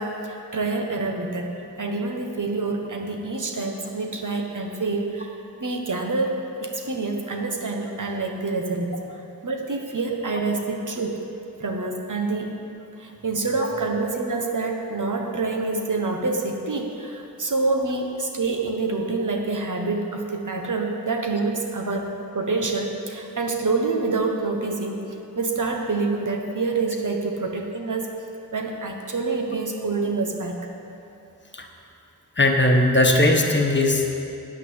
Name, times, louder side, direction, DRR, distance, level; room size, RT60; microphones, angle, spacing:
voice 1, 0.0-5.3 5.6-9.0 9.4-11.2 11.6-12.5 13.0-25.1 25.3-28.1 28.5-30.6, right 3 dB, 55° right, 2 dB, 1.2 m, -27 dB
voice 2, 32.4-34.1, left 1 dB, 30° left, 2 dB, 1.2 m, -18 dB
9.2 x 5.8 x 8.1 m, 2.8 s
cardioid pair, 55°, 37 cm